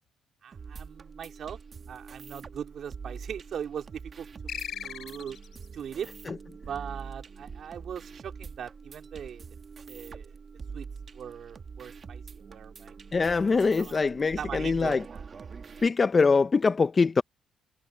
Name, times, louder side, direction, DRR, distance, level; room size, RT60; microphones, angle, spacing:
voice 1, 0.4-1.6 1.9-4.3 4.5-5.4 5.7-6.1 6.6-9.4 9.9-10.3 10.7-10.9 11.1-12.9 13.4-13.9 14.4-15.3, right 8 dB, 60° right, 3.6 m, -40 dB
sound 1, 0.5-15.9, right 5 dB, 40° right, 1.4 m, -44 dB
sound 2, 4.5-5.7, left 9 dB, 65° left, 4.8 m, -38 dB
voice 2, 13.1-15.0 15.8-17.2, left 4 dB, 35° left, 0.6 m, -23 dB
cardioid pair, 90°, 0 cm